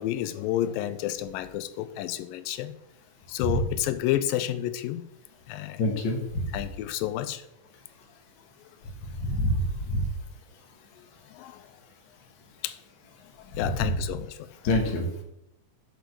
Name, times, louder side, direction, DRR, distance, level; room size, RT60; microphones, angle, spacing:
voice 1, 0.0-2.7 3.3-5.1 5.5-5.8 6.5-7.4 11.3-11.6 12.6-12.8 13.6-14.4, left 12 dB, 90° left, 12 dB, 2.3 m, -30 dB
voice 2, 5.8-6.4 9.2-10.0 13.6-13.9 14.6-15.2, left 1 dB, 50° left, 1 dB, 1.5 m, -26 dB
7.8 x 5.0 x 6.6 m, 0.82 s
omnidirectional pair, 3.9 m